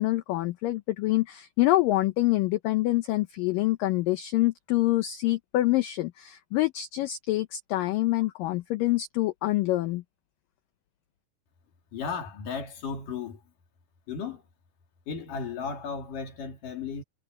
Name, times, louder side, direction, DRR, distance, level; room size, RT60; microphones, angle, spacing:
voice 1, 0.0-10.0, left 17 dB, 85° left, 1.9 m, -26 dB
voice 2, 11.9-13.4 14.1-14.4 15.1-17.0, left 5 dB, 55° left, 4.4 m, -35 dB
omnidirectional pair, 4.9 m